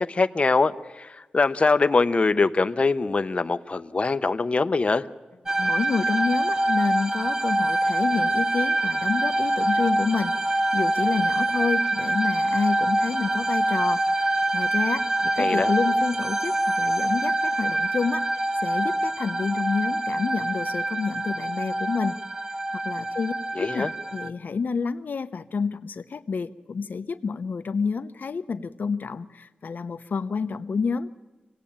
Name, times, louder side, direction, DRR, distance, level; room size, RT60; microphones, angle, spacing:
voice 1, 0.0-5.0 15.4-15.7 23.6-23.9, left 3 dB, 40° left, 10 dB, 0.8 m, -23 dB
sound 1, 5.5-24.3, right 1 dB, 20° right, 0.9 m, -25 dB
voice 2, 5.6-18.3 18.6-22.2 22.7-23.3 23.6-31.1, left 5 dB, 70° left, 11 dB, 0.9 m, -29 dB
26.0 x 17.5 x 8.7 m, 1.2 s
wide cardioid pair, 120°, 3 cm